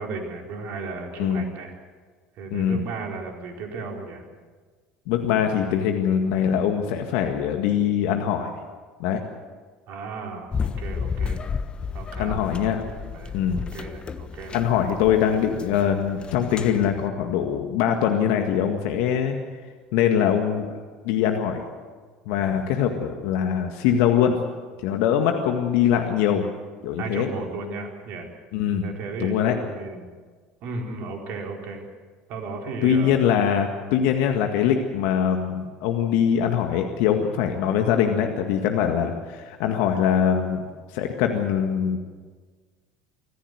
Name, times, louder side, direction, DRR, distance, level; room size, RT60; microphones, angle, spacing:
voice 1, 0.0-1.7 2.4-4.3 9.9-11.4 11.9-12.4 13.0-14.6 27.0-28.3 28.8-30.1 30.6-31.8 32.3-33.2, right 4 dB, 55° right, 2 dB, 4.3 m, -35 dB
voice 2, 2.5-2.8 5.1-8.5 9.0-9.2 12.2-12.8 13.3-13.6 14.5-19.4 19.9-20.7 21.0-21.6 22.3-24.4 24.8-26.4 26.8-27.3 28.5-28.8 29.2-29.6 32.8-42.0, left 8 dB, 65° left, 4 dB, 1.8 m, -22 dB
sound 1, 10.5-17.1, left 6 dB, 30° left, 1.3 m, -32 dB
25.0 x 15.0 x 8.0 m, 1.5 s
hypercardioid pair, 70°, 3 cm